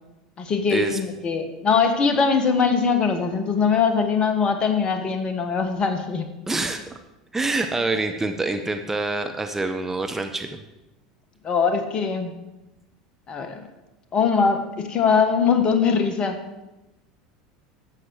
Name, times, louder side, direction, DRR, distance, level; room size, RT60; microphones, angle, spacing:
voice 1, 0.4-6.2 11.4-12.3 13.3-13.6 14.1-16.4, left 5 dB, 35° left, 7 dB, 1.6 m, -21 dB
voice 2, 6.5-7.0 7.3-10.6, right 2 dB, 15° right, 6 dB, 0.9 m, -26 dB
12.0 x 8.0 x 4.7 m, 0.98 s
figure-of-eight pair, 75°, 3 cm